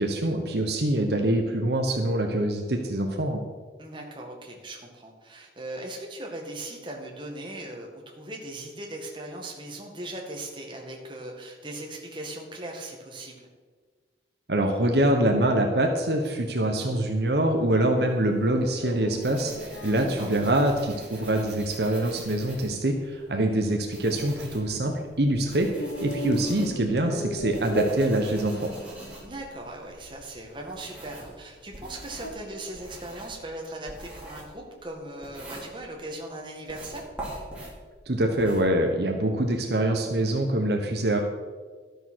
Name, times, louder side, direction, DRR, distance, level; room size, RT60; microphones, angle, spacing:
voice 1, 0.0-3.4 14.5-28.7 38.1-41.2, right 1 dB, 65° right, 3 dB, 1.1 m, -25 dB
voice 2, 3.8-13.5 19.9-20.4 29.2-37.1, right 1 dB, 25° right, 0 dB, 1.9 m, -39 dB
sound 1, 18.0-32.3, right 1 dB, 70° left, 1.2 m, -38 dB
sound 2, 19.2-23.2 23.6-31.4 31.7-36.2 36.6-38.6, right 1 dB, 5° right, 3.1 m, -44 dB
12.5 x 6.8 x 6.3 m, 1.5 s
head